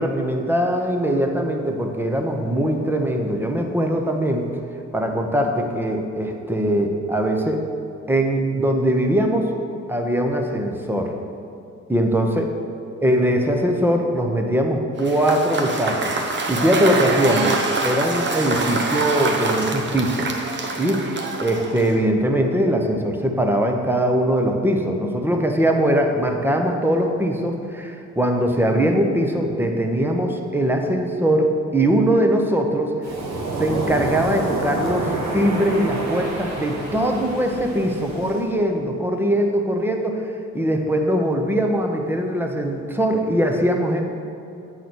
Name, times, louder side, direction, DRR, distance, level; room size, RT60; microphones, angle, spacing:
voice 1, 0.0-4.5 4.9-7.6 8.1-9.5 9.9-11.1 11.9-12.5 13.0-17.5 17.8-20.3 20.8-21.1 21.4-32.9 33.6-44.0, right 1 dB, 5° right, 3 dB, 0.9 m, -21 dB
Cheering / Applause / Crowd, 15.0-22.1, right 3 dB, 35° right, 0.9 m, -25 dB
Waves surf, 33.0-38.5, right 2 dB, 65° right, 1.5 m, -28 dB
8.1 x 4.0 x 6.1 m, 2.7 s
cardioid pair, 90°, 30 cm